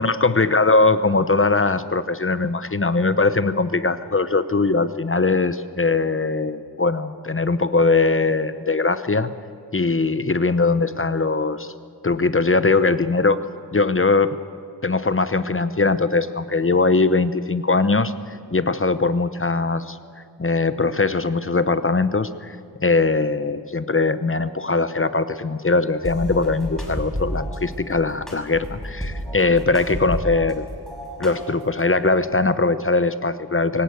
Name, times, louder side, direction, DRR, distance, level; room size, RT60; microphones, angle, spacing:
voice 1, 0.0-9.3 9.7-11.7 12.0-13.4 13.7-14.4 14.8-20.0 20.4-30.7 31.2-33.8, left 3 dB, 30° left, 12 dB, 0.8 m, -21 dB
sound 1, 25.9-32.6, left 1 dB, 75° left, 7.9 m, -50 dB
sound 2, 26.0-27.6 28.3-30.5 30.9-31.8, equal, ahead, 5.7 m, -31 dB
24.0 x 17.0 x 8.0 m, 2.3 s
wide cardioid pair, 90°, 40 cm